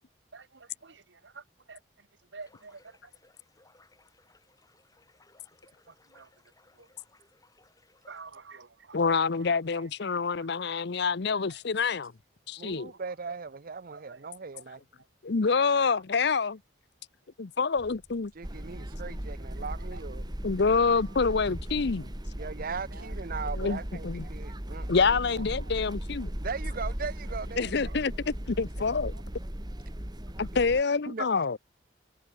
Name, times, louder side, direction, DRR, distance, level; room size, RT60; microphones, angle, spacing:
voice 1, 0.3-1.8 2.3-3.0 5.9-6.3 6.8-6.9 8.1-9.0 9.3-9.4 9.7-10.2 11.0-11.5 13.9-14.2 14.5-14.6 19.7-20.0 22.9-23.1 23.6-23.8 25.6-25.7 27.6-27.7, right 4 dB, 75° right, 1.6 m, -49 dB
sound 1, 2.4-8.2, left 2 dB, 20° left, 7.7 m, -63 dB
voice 2, 8.9-12.1 12.5-12.9 15.2-16.6 17.4-18.3 19.1-19.2 20.4-22.1 23.6-24.3 24.9-26.3 27.6-29.1 30.4-31.6, left 4 dB, 65° left, 0.7 m, -27 dB
voice 3, 12.6-14.8 18.3-20.2 22.4-25.4 26.4-28.0 31.1-31.3, right 5 dB, 50° right, 0.7 m, -39 dB
sound 2, 17.8-25.9, equal, ahead, 6.8 m, -54 dB
sound 3, 18.4-30.8, equal, 25° right, 1.9 m, -37 dB
head